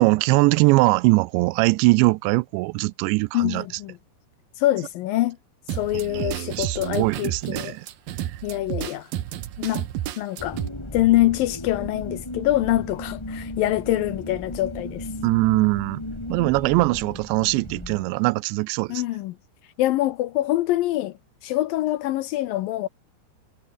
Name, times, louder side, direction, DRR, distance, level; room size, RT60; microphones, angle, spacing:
voice 1, 0.0-3.6 5.9-7.9 8.2-8.4 15.2-16.0 16.3-19.0, right 23 dB, 90° right, 2.9 m, -21 dB
voice 2, 3.3-4.0 4.6-5.4 5.7-7.8 8.4-9.1 9.6-9.9 10.2-10.6 10.9-15.1 18.9-19.4 19.8-21.1 21.4-22.9, left 15 dB, 80° left, 2.0 m, -24 dB
sound 1, 5.7-10.7, right 12 dB, 65° right, 2.8 m, -31 dB
sound 2, 10.4-18.0, left 1 dB, 10° left, 1.9 m, -36 dB
omnidirectional pair, 5.0 m